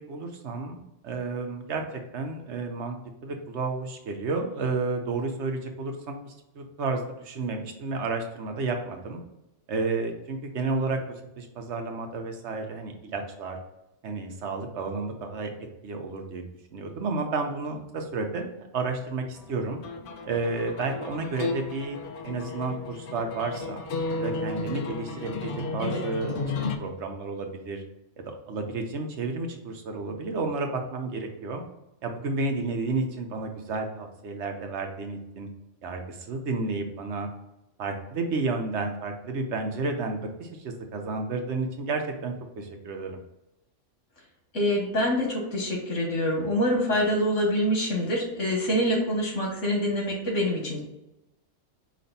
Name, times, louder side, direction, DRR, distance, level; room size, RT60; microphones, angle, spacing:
voice 1, 0.0-1.8 2.1-3.0 3.2-9.2 9.7-13.6 14.0-15.5 15.8-16.4 16.7-19.8 20.2-22.0 22.2-23.8 24.2-26.5 26.8-27.8 28.3-31.6 32.0-35.5 35.8-37.3 37.8-43.2, right 3 dB, 70° right, 4 dB, 1.0 m, -31 dB
sound 1, 19.4-26.8, left 3 dB, 55° left, 0.7 m, -33 dB
voice 2, 44.5-50.8, equal, 80° left, -1 dB, 1.8 m, -26 dB
5.1 x 2.5 x 4.0 m, 0.92 s
omnidirectional pair, 1.3 m